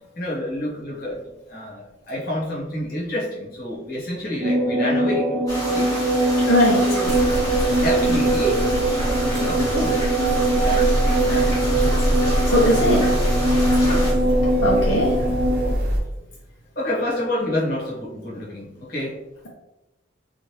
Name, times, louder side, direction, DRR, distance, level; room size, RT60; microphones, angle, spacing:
voice 1, 0.1-6.0 6.8-7.2 7.8-8.7 9.3-10.0 10.6-10.8 11.2-11.7 12.8-13.0 13.8-14.2 14.7-15.3 16.7-19.2, left 1 dB, 50° left, -6 dB, 1.0 m, -29 dB
sound 1, 4.4-15.7, right 2 dB, 25° right, 1.1 m, -22 dB
sound 2, 5.5-14.1, left 1 dB, 20° left, 1.1 m, -31 dB
voice 2, 6.4-7.0 12.5-13.1 14.6-15.1, left 1 dB, 80° left, -4 dB, 0.6 m, -19 dB
sound 3, 7.0-16.0, equal, 55° right, 0.6 m, -24 dB
3.1 x 2.4 x 2.9 m, 0.97 s
head